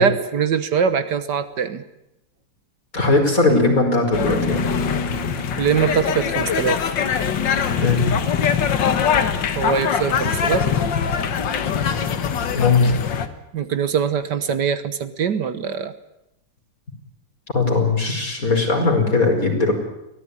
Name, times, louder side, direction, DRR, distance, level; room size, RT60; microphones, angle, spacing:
voice 1, 0.0-1.8 5.6-6.8 9.6-10.7 13.5-15.9, right 7 dB, 70° right, 11 dB, 1.8 m, -22 dB
voice 2, 2.9-4.7 7.8-8.1 12.5-12.9 17.5-19.7, left 3 dB, 50° left, 3 dB, 5.6 m, -19 dB
sound 1, 3.5-6.6, right 2 dB, 15° left, 1.4 m, -29 dB
sound 2, 4.1-13.3, left 7 dB, 80° left, 2.1 m, -22 dB
23.5 x 18.0 x 9.9 m, 0.86 s
omnidirectional pair, 1.9 m